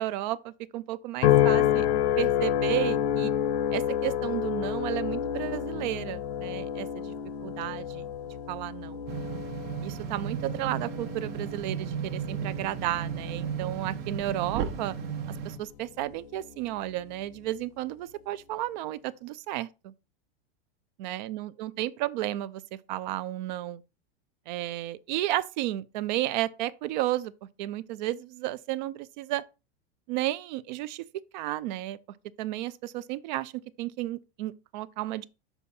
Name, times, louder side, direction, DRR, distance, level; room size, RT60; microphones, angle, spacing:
voice 1, 0.0-1.9 2.2-3.3 3.7-7.1 7.4-8.1 8.5-9.0 9.8-15.0 15.4-19.9 21.0-23.8 24.5-27.3 27.6-29.4 30.1-31.0 31.3-32.0 32.4-33.5 33.8-35.3, right 14 dB, 45° right, 0.4 m, -32 dB
sound 1, 1.2-15.7 16.2-16.6, left 10 dB, 85° left, 0.9 m, -29 dB
sound 2, 9.1-15.6, right 8 dB, 65° right, 1.1 m, -35 dB
6.8 x 4.7 x 4.2 m
supercardioid pair, 165°, 31 cm